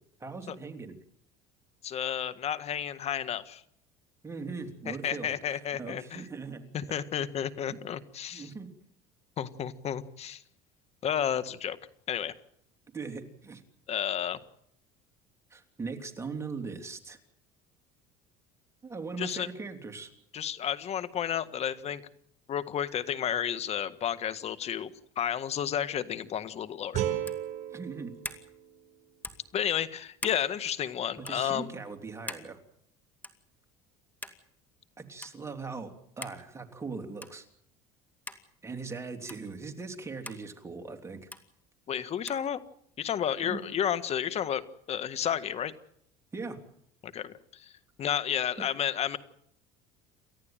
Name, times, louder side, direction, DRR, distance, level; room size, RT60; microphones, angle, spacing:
voice 1, 0.2-0.9 4.2-6.7 8.3-8.7 12.9-13.6 15.5-17.2 18.8-20.1 27.7-28.1 31.2-32.6 35.0-37.5 38.6-41.3 43.4-43.6 46.3-46.6, right 4 dB, 15° right, 5 dB, 3.4 m, -40 dB
voice 2, 1.8-3.6 4.9-6.2 6.7-8.5 9.4-10.4 11.0-11.8 12.1-12.3 13.9-14.4 19.2-19.5 20.3-22.0 22.5-27.0 29.5-31.7 41.9-42.6 43.0-44.6 44.9-45.7 47.0-47.7 48.0-49.2, left 9 dB, 40° left, 13 dB, 1.7 m, -31 dB
sound 1, 26.9-30.0, right 11 dB, 50° right, 4.4 m, -36 dB
sound 2, 27.2-27.5 28.2-28.5 29.2-29.5 30.2-30.4 31.2-31.4 32.3-32.5 33.2-33.5 34.2-34.4 35.2-35.3 36.2-36.4 37.2-37.4 38.3-38.4 39.3-39.4 40.2-40.4 41.3-41.4 42.3-42.4, left 2 dB, 10° left, 2.4 m, -41 dB
29.0 x 14.0 x 9.1 m, 0.71 s
supercardioid pair, 115°, 16 cm